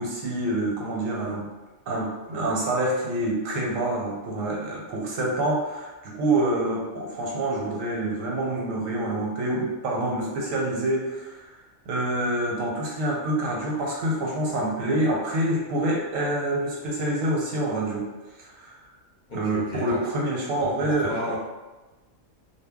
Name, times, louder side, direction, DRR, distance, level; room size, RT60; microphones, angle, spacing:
voice 1, 0.0-1.5 1.9-11.5 11.9-18.1 18.4-18.7 19.3-21.4, right 1 dB, 85° right, -2 dB, 1.1 m, -27 dB
voice 2, 19.3-20.1 20.5-21.4, left 1 dB, 45° left, -7 dB, 0.7 m, -33 dB
2.2 x 2.0 x 3.5 m, 1.2 s
omnidirectional pair, 1.3 m